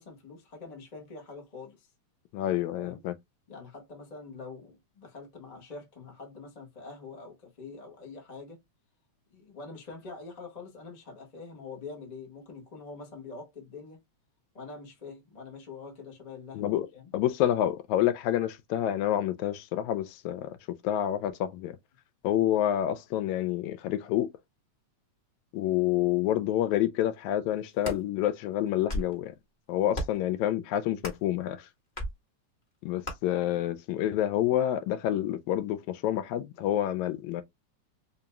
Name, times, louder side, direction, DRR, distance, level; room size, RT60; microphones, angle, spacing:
voice 1, 0.0-1.9 2.7-3.0 3.5-8.6 9.3-14.0 14.5-16.6 16.9-17.1, left 4 dB, 40° left, 0.5 m, -45 dB
voice 2, 2.3-3.1 16.5-16.9 17.1-20.6 20.8-21.8 22.2-24.3 25.5-29.3 29.7-31.7 32.8-37.4, left 12 dB, 80° left, 1.9 m, -28 dB
sound 1, 27.6-28.0 28.7-29.2 29.9-30.3 31.0-31.3 32.0-32.1 33.0-33.2, equal, 20° left, 1.2 m, -34 dB
5.1 x 2.8 x 2.2 m
omnidirectional pair, 3.3 m